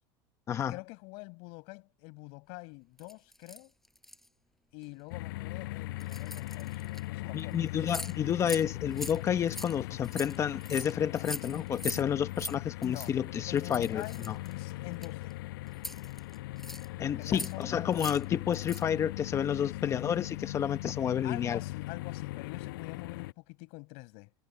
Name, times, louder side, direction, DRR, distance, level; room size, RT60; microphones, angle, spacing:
voice 1, 0.7-3.7 4.7-7.8 12.8-13.1 13.5-15.3 17.0-17.7 19.6-20.0 21.2-24.3, left 29 dB, 60° left, 5.9 m, -45 dB
sound 1, 3.0-4.3 4.8-5.0 6.0-7.0 7.4-7.5 7.7-8.1 8.4-8.6 8.9-12.0 12.3-12.5 12.8-13.1 13.6-15.3 15.7-16.9 17.2-17.6 17.9-18.2 18.5-18.9, left 1 dB, ahead, 5.1 m, -42 dB
sound 2, 5.1-23.3, left 19 dB, 80° left, 7.2 m, -39 dB
voice 2, 7.3-14.4 17.0-21.6, left 9 dB, 25° left, 1.0 m, -30 dB
supercardioid pair, 150°, 11 cm